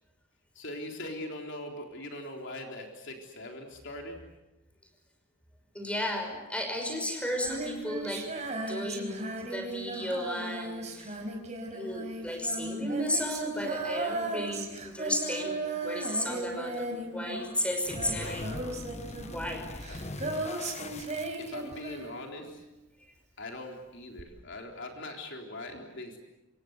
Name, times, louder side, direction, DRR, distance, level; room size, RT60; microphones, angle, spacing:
voice 1, 0.6-4.2 19.9-20.0 21.4-22.6 23.4-26.2, left 1 dB, 55° left, 2 dB, 3.8 m, -41 dB
voice 2, 5.7-8.3 8.6-11.2 11.7-18.7 19.3-20.0, left 1 dB, 5° left, 4 dB, 5.7 m, -34 dB
Female singing, 7.3-22.6 24.2-24.3, right 2 dB, 30° right, 4.8 m, -36 dB
sound 1, 17.7-21.9, left 2 dB, 30° left, 1.3 m, -41 dB
27.5 x 25.5 x 8.1 m, 1.0 s
head